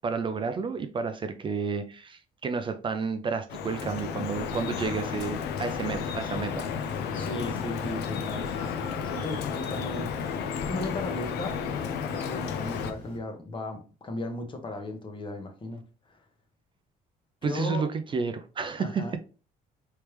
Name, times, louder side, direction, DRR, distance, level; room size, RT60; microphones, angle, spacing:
voice 1, 0.0-6.7 17.4-19.0, right 5 dB, 30° right, 0.4 m, -31 dB
Drip, 3.5-12.9, left 7 dB, 80° left, 0.5 m, -33 dB
sound 1, 6.2-13.2, left 2 dB, 50° left, 1.6 m, -44 dB
voice 2, 7.1-16.2 17.4-17.8 18.8-19.2, left 2 dB, 30° left, 1.0 m, -36 dB
3.3 x 3.2 x 3.0 m
cardioid pair, 110°, 17 cm